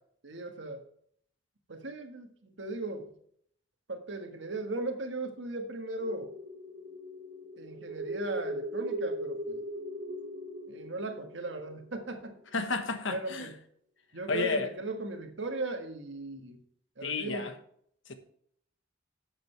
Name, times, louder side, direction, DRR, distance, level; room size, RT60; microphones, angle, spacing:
voice 1, 0.2-0.8 1.7-3.1 3.9-6.3 7.6-9.6 10.7-12.4 13.1-13.5 14.1-16.6 17.0-17.5, right 2 dB, 70° right, 5 dB, 1.6 m, -37 dB
sound 1, 6.0-12.5, right 1 dB, 40° right, 1.4 m, -39 dB
voice 2, 12.5-13.5 14.3-14.7 17.0-17.5, left 3 dB, 75° left, 8 dB, 1.3 m, -31 dB
12.0 x 7.7 x 3.3 m, 0.66 s
head